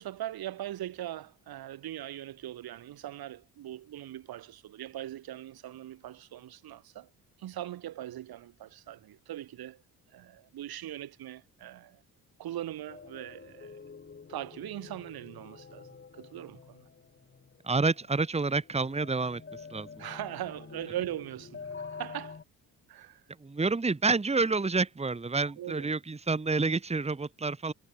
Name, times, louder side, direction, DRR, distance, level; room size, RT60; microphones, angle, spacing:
voice 1, 0.0-7.1 7.4-9.8 10.1-12.0 12.4-13.8 14.3-16.8 20.0-22.4 22.9-23.2 25.5-25.9, right 13 dB, 75° right, 3.7 m, -40 dB
sound 1, 12.9-22.4, left 5 dB, 30° left, 2.7 m, -47 dB
voice 2, 17.6-19.4 19.7-19.9 23.4-27.7, right 3 dB, 15° right, 1.9 m, -28 dB
cardioid pair, 100°, 37 cm